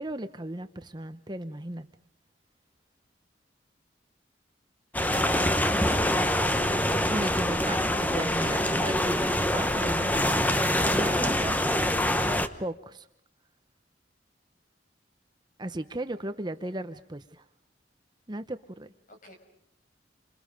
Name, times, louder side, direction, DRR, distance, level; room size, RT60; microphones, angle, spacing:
voice 1, 0.0-1.9 7.1-11.7 12.6-13.1 15.6-17.4 18.3-18.9, right 1 dB, 25° right, 10 dB, 0.9 m, -36 dB
sound 1, 4.9-12.5, left 1 dB, 10° left, 1.1 m, -25 dB
voice 2, 16.7-16.8 19.1-19.4, left 1 dB, 45° left, 5 dB, 5.9 m, -50 dB
29.0 x 26.5 x 5.2 m, 0.73 s
head